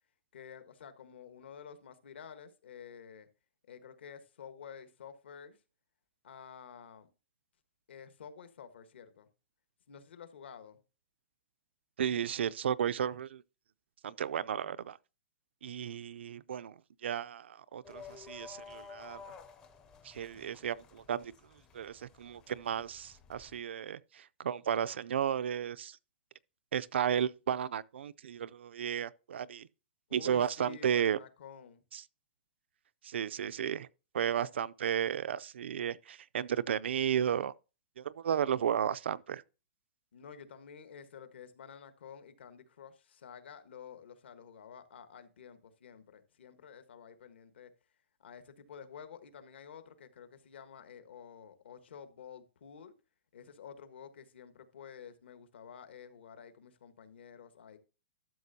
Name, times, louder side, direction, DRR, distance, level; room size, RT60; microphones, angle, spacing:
voice 1, 0.3-3.3 3.7-5.6 6.2-7.1 7.9-9.3 9.9-10.8 30.1-31.8 40.1-47.7 48.2-52.9 53.3-57.8, left 7 dB, 70° left, 1.4 m, -51 dB
voice 2, 12.0-13.4 14.0-15.0 15.6-16.7 17.0-19.2 20.0-21.3 21.7-26.0 26.7-29.7 30.1-31.2 31.9-32.0 33.0-33.9 34.1-37.5 38.0-39.4, right 9 dB, 85° right, 0.4 m, -33 dB
sound 1, 17.8-23.6, left 5 dB, 10° left, 0.5 m, -53 dB
12.5 x 6.8 x 2.7 m
hypercardioid pair, 180°, 6 cm